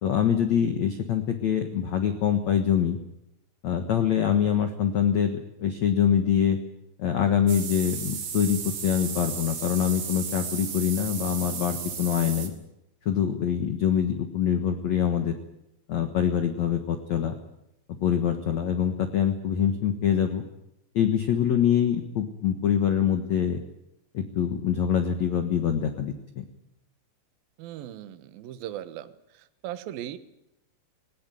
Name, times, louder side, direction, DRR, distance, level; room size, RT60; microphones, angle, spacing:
voice 1, 0.0-3.0 3.6-6.6 7.0-12.5 13.0-15.3 15.9-17.3 18.0-20.4 20.9-23.6 24.1-26.5, left 9 dB, 80° left, 6 dB, 1.6 m, -24 dB
sound 1, 7.5-12.5, right 7 dB, 50° right, 3.4 m, -34 dB
voice 2, 27.6-29.1 29.6-30.2, right 12 dB, 70° right, 10 dB, 2.4 m, -37 dB
19.5 x 19.5 x 9.3 m, 0.85 s
omnidirectional pair, 5.6 m